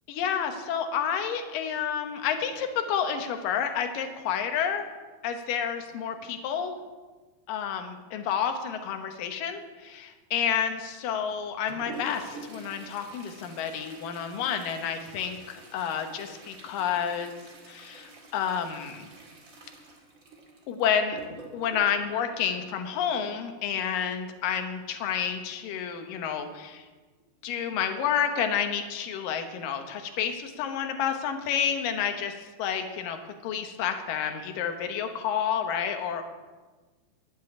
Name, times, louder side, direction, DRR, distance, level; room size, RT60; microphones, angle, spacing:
voice 1, 0.1-4.9 5.2-6.8 7.5-17.4 17.7-19.1 20.7-21.2 21.5-26.8 27.4-36.2, left 8 dB, 70° left, 6 dB, 2.3 m, -30 dB
Toilet flush, 11.3-23.3 25.1-25.2 25.6-25.7 26.4-26.5 27.2-27.4 27.9-28.0, right 2 dB, 50° right, 1.0 m, -47 dB
11.0 x 7.7 x 9.7 m, 1.3 s
omnidirectional pair, 5.1 m